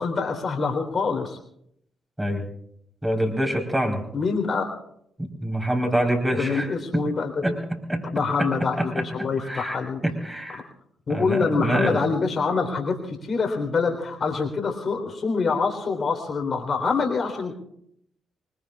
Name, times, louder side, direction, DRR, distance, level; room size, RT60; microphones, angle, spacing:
voice 1, 0.0-1.4 4.1-4.7 6.4-7.3 8.1-10.0 11.1-17.6, left 4 dB, 45° left, 4 dB, 3.9 m, -25 dB
voice 2, 3.0-4.0 5.2-7.0 7.4-8.0 8.4-10.6 11.1-12.0, right 1 dB, 10° right, 2 dB, 4.3 m, -26 dB
24.5 x 22.0 x 2.5 m, 0.72 s
figure-of-eight pair, 40°, 0 cm